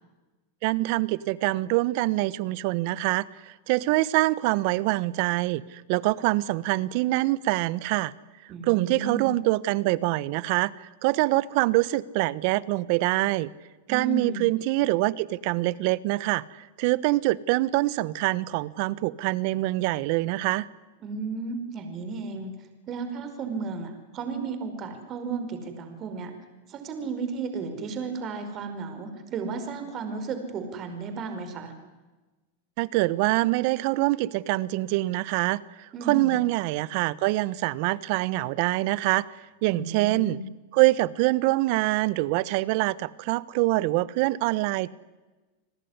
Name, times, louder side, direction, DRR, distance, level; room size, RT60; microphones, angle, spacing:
voice 1, 0.6-8.1 8.6-13.5 13.9-20.7 32.8-39.3 39.6-40.4 40.7-44.9, right 19 dB, 60° right, 20 dB, 1.1 m, -25 dB
voice 2, 8.5-9.3 13.9-14.5 21.0-22.5 22.9-26.3 26.7-31.7 35.9-36.4 39.7-40.5, right 4 dB, 40° right, 8 dB, 5.2 m, -34 dB
29.5 x 20.0 x 9.9 m, 1.2 s
hypercardioid pair, 110°, 0 cm